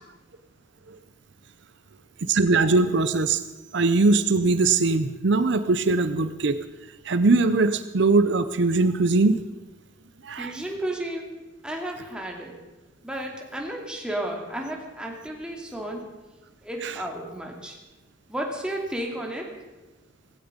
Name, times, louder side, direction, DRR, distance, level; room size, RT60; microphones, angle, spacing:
voice 1, 2.2-3.4 3.7-6.6 7.0-9.4 10.2-10.6 16.8-16.9, right 3 dB, 65° right, 11 dB, 0.7 m, -21 dB
voice 2, 10.3-12.5 13.0-16.0 16.6-17.8 18.3-19.5, right 1 dB, 5° right, 0 dB, 2.7 m, -33 dB
17.0 x 16.0 x 5.2 m, 1.1 s
head